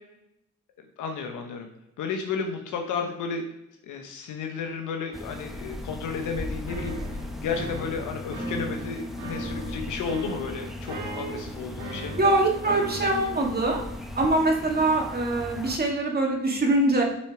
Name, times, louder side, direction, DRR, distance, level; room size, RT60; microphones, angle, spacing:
voice 1, 1.0-1.7 2.0-3.4 3.8-12.2, left 5 dB, 85° left, 4 dB, 1.1 m, -33 dB
sound 1, 5.1-15.8, left 1 dB, ahead, 0.9 m, -38 dB
sound 2, 6.7-13.5, right 1 dB, 75° right, 3.0 m, -38 dB
voice 2, 10.9-11.4 12.2-13.8 14.2-17.0, right 2 dB, 30° right, 0 dB, 2.2 m, -24 dB
7.5 x 4.3 x 4.9 m, 0.85 s
cardioid pair, 90°, 30 cm